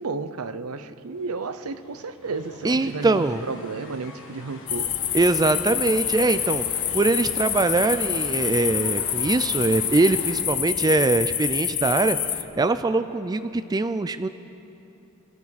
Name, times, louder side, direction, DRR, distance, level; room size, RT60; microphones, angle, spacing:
voice 1, 0.0-4.9, right 4 dB, 75° right, 12 dB, 0.7 m, -32 dB
sound 1, 1.1-10.4, left 2 dB, 60° left, 1.9 m, -43 dB
voice 2, 2.6-3.4 5.1-6.7 6.9-12.2 12.6-14.3, right 3 dB, 20° right, 11 dB, 0.3 m, -22 dB
sound 2, 4.7-12.4, left 10 dB, 35° left, 0.7 m, -27 dB
26.5 x 13.0 x 4.1 m, 2.8 s
head